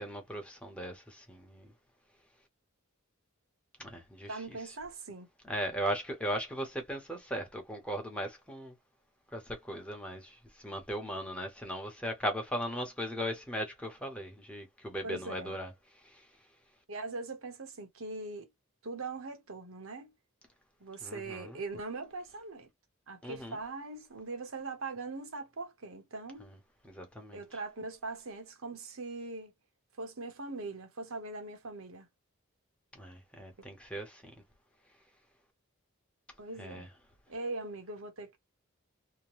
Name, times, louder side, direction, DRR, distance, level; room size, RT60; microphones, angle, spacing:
voice 1, 0.0-1.7 3.8-4.7 5.4-8.8 9.3-16.3 21.0-21.6 23.2-23.6 26.4-26.6 26.8-27.4 32.9-34.3 36.6-36.9, equal, 5° left, 0.9 m, -38 dB
voice 2, 4.3-5.3 15.0-15.6 16.9-18.5 18.8-20.1 20.8-22.7 23.1-26.5 27.3-29.5 30.0-32.1 36.4-36.9 37.3-38.4, right 3 dB, 75° right, 1.0 m, -41 dB
2.8 x 2.1 x 3.1 m
head